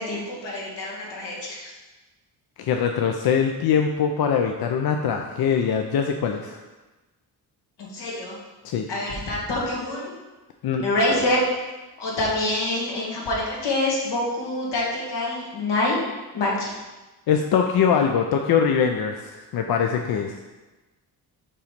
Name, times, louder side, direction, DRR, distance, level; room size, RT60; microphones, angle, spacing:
voice 1, 0.0-1.7 7.8-8.4 8.9-10.1 10.8-11.4 12.0-16.0 16.3-16.7, left 2 dB, 90° left, -3 dB, 1.8 m, -26 dB
voice 2, 2.6-6.6 8.6-8.9 10.6-10.8 17.3-20.4, left 7 dB, 65° left, 4 dB, 0.5 m, -22 dB
5.5 x 4.0 x 5.1 m, 1.1 s
cardioid pair, 110°, 40 cm